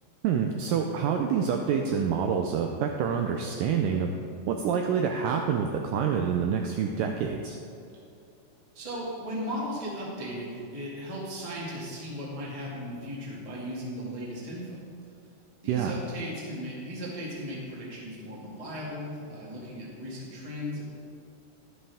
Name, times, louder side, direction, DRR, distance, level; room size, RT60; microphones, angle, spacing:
voice 1, 0.2-4.1 4.5-7.6 15.7-16.0, right 7 dB, 90° right, 3 dB, 1.9 m, -27 dB
voice 2, 8.7-14.9 15.6-20.8, equal, 15° right, -6 dB, 1.2 m, -36 dB
11.5 x 11.0 x 3.6 m, 2.6 s
omnidirectional pair, 4.5 m